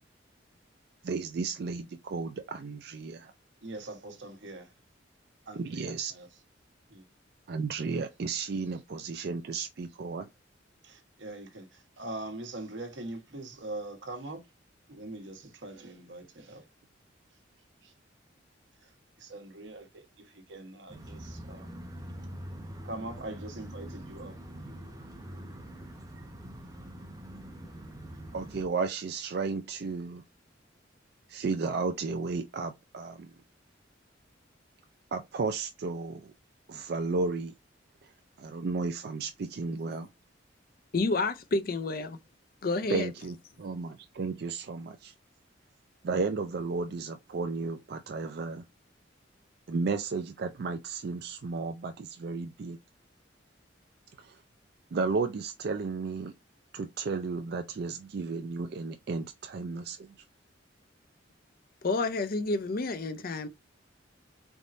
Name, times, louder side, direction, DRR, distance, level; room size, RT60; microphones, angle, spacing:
voice 1, 1.0-3.3 5.6-6.1 7.5-10.3 28.3-30.2 31.3-33.3 35.1-36.3 36.7-37.5 38.4-40.1 42.9-45.1 46.0-48.6 49.7-52.8 54.2-54.4 54.9-56.3 56.7-60.0, right 4 dB, 55° right, 0.4 m, -33 dB
voice 2, 3.6-4.7 5.5-6.3 6.9-7.0 10.8-14.4 14.9-16.6 17.8-17.9 18.8-18.9 19.2-21.7 22.8-24.4, right 2 dB, 70° right, 1.1 m, -42 dB
sound 1, 20.9-28.6, equal, 20° right, 0.7 m, -44 dB
voice 3, 40.9-42.2 42.6-43.1 61.8-63.5, left 3 dB, 50° left, 0.5 m, -29 dB
4.1 x 3.5 x 2.6 m
head